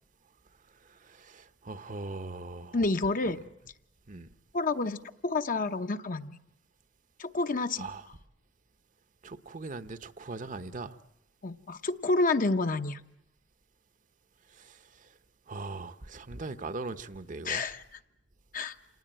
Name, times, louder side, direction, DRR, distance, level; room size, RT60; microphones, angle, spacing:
voice 1, 0.8-2.8 4.1-4.3 7.8-8.1 9.2-11.0 14.5-15.1 15.5-17.7, right 3 dB, 45° right, 0.9 m, -40 dB
voice 2, 2.7-3.4 4.5-6.4 7.2-7.9 11.4-13.0 17.4-17.8 18.5-18.8, left 3 dB, 50° left, 0.9 m, -29 dB
27.0 x 19.0 x 8.9 m
head